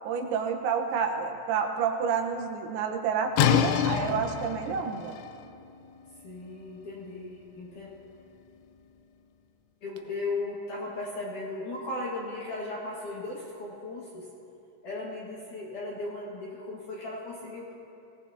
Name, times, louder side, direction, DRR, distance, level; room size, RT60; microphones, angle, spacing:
voice 1, 0.0-5.1, right 6 dB, 90° right, 3 dB, 4.0 m, -29 dB
sound 1, 3.4-9.0, left 9 dB, 85° left, 2.7 m, -30 dB
voice 2, 6.2-7.9 9.8-14.3 14.8-17.7, left 2 dB, 55° left, -5 dB, 2.5 m, -36 dB
25.5 x 18.0 x 2.9 m, 2.7 s
omnidirectional pair, 5.9 m